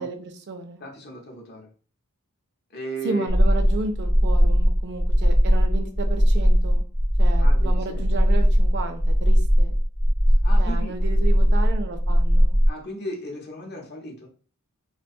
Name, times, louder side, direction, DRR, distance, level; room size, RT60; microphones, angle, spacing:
voice 1, 0.0-0.8 3.0-6.8 7.2-9.7 10.6-12.6, right 3 dB, 50° right, 7 dB, 0.4 m, -33 dB
voice 2, 0.8-1.7 2.7-3.3 7.4-8.2 10.3-11.0 12.7-14.3, right 1 dB, 50° left, 0 dB, 0.7 m, -35 dB
sound 1, 3.3-12.7, equal, 5° left, 0.4 m, -19 dB
2.4 x 2.2 x 2.6 m, 0.41 s
head